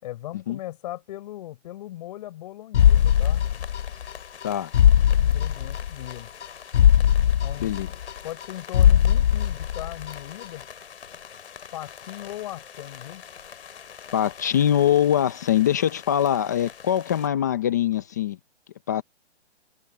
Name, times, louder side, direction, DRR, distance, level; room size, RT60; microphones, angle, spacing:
voice 1, 0.0-3.4 5.2-6.3 7.4-7.7 8.2-10.6 11.7-13.2, left 14 dB, 35° left, 5.3 m, -38 dB
sound 1, 2.7-4.1 4.4-4.5 4.7-6.1 6.4-6.5 6.7-8.5 8.7-10.1 10.4-10.5, left 10 dB, 90° left, 0.6 m, -19 dB
sound 2, 2.8-17.3, left 7 dB, 65° left, 3.5 m, -44 dB
voice 2, 14.1-18.4 18.9-19.0, left 10 dB, 15° left, 0.5 m, -23 dB
hypercardioid pair, 165°, 34 cm